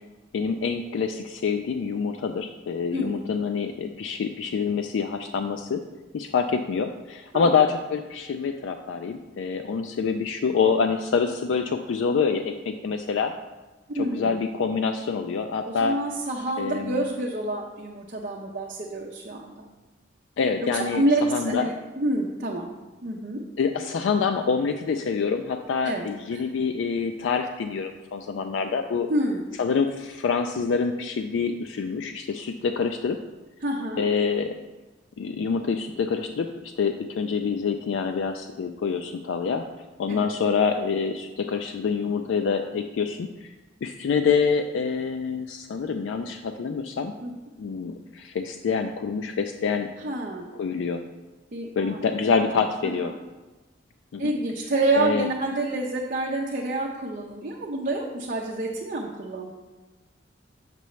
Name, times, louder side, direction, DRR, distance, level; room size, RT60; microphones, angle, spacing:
voice 1, 0.3-5.8 6.1-13.3 13.9-16.0 16.6-17.0 20.4-21.0 21.3-21.7 23.6-29.1 29.6-33.2 34.0-34.5 35.2-39.7 40.0-43.5 43.8-47.1 47.6-49.9 50.5-51.0 51.8-53.1 54.1-54.3 55.0-55.3, left 5 dB, 85° left, 6 dB, 0.3 m, -26 dB
voice 2, 13.9-14.4 15.7-19.6 20.7-22.7 23.0-23.4 25.8-26.4 29.1-29.4 33.6-34.0 40.1-40.3 47.2-47.3 50.0-50.4 51.5-52.0 52.8-53.1 54.2-59.5, right 2 dB, 45° right, -1 dB, 0.6 m, -28 dB
6.8 x 6.7 x 3.1 m, 1.2 s
head